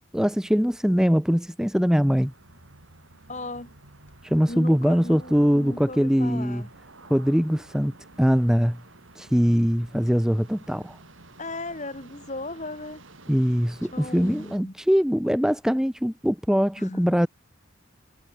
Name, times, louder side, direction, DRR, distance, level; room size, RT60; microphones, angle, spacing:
voice 1, 0.1-2.3 4.2-6.6 7.1-8.8 9.1-11.0 13.3-17.3, equal, 5° right, 0.9 m, -22 dB
sound 1, 2.1-14.6, right 2 dB, 80° right, 4.1 m, -50 dB
voice 2, 3.3-3.7 4.5-6.7 11.4-13.0 13.9-14.7 16.8-17.0, left 2 dB, 35° left, 4.6 m, -36 dB
head